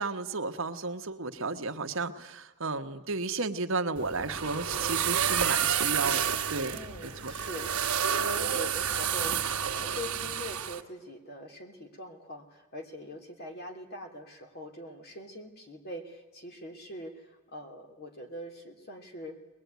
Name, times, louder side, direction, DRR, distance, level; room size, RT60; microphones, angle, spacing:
voice 1, 0.0-6.2 6.5-6.8 7.0-7.3, right 3 dB, 65° right, 6 dB, 1.3 m, -33 dB
sound 1, 4.0-10.8, right 8 dB, 85° right, 1.5 m, -30 dB
voice 2, 6.7-19.4, equal, 45° left, 3 dB, 3.2 m, -43 dB
22.0 x 21.0 x 9.4 m, 1.2 s
head